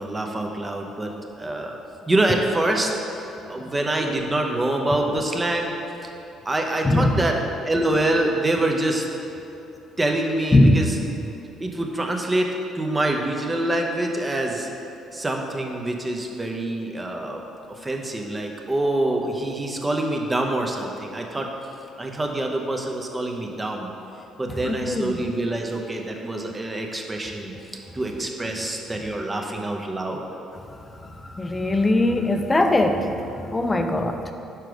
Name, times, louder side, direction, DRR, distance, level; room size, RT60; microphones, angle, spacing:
voice 1, 0.0-1.8 2.1-2.9 3.5-5.7 6.4-7.4 7.7-9.1 10.0-11.0 11.6-14.7 15.1-17.4 17.7-21.5 22.0-23.9 24.4-27.5 27.9-30.2, right 1 dB, 20° right, 2 dB, 0.8 m, -25 dB
voice 2, 6.8-7.2 10.5-10.9 24.6-25.2 31.3-33.1 33.5-34.3, left 1 dB, 20° left, 6 dB, 0.5 m, -20 dB
4.9 x 4.5 x 4.8 m, 2.9 s
hypercardioid pair, 50°, 0 cm